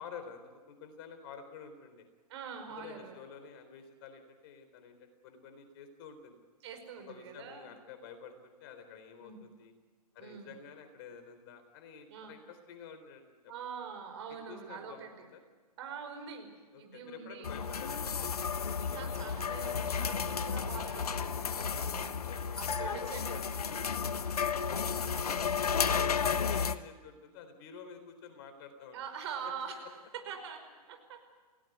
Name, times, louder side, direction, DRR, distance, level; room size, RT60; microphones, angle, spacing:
voice 1, 0.0-2.1 2.6-6.4 7.1-9.7 10.1-13.5 14.3-15.4 16.7-18.0 20.5-20.6 22.2-25.5 26.0-29.0 29.4-29.5, left 6 dB, 35° left, 8 dB, 3.8 m, -50 dB
voice 2, 2.3-3.2 6.6-7.7 9.2-9.4 10.2-10.5 12.1-12.3 13.5-15.3 15.8-16.5 16.8-17.5 18.9-22.2 22.8-23.4 24.8-25.0 28.9-30.0 30.3-30.6 30.9-31.2, right 6 dB, 45° right, 5 dB, 5.3 m, -44 dB
sound 1, 17.4-26.8, left 6 dB, 65° left, 1.2 m, -33 dB
29.5 x 17.5 x 8.1 m, 1.4 s
figure-of-eight pair, 120°, 21 cm